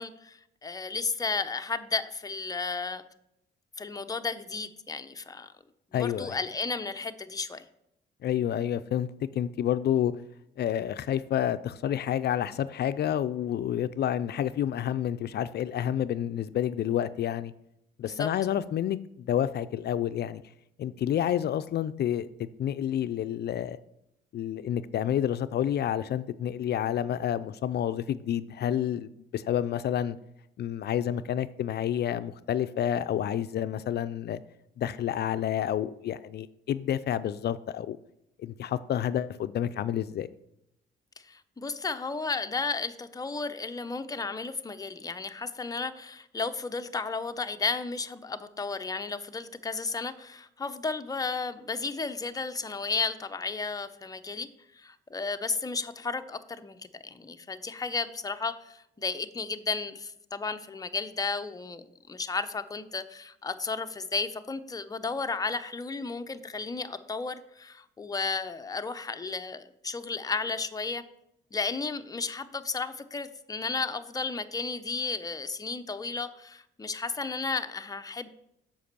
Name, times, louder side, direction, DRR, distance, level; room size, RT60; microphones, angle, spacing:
voice 1, 0.0-3.0 3.8-5.5 5.9-7.6 18.0-18.3 41.2-54.5 54.7-56.8 57.0-71.0 71.5-78.3, left 4 dB, 20° left, 0.6 m, -33 dB
voice 2, 5.9-6.4 8.2-10.1 10.6-17.5 18.0-20.4 20.8-23.8 24.3-30.2 30.6-34.4 34.8-38.0 38.4-40.3, left 10 dB, 55° left, 0.4 m, -29 dB
7.7 x 5.3 x 6.8 m
cardioid pair, 90°, 20 cm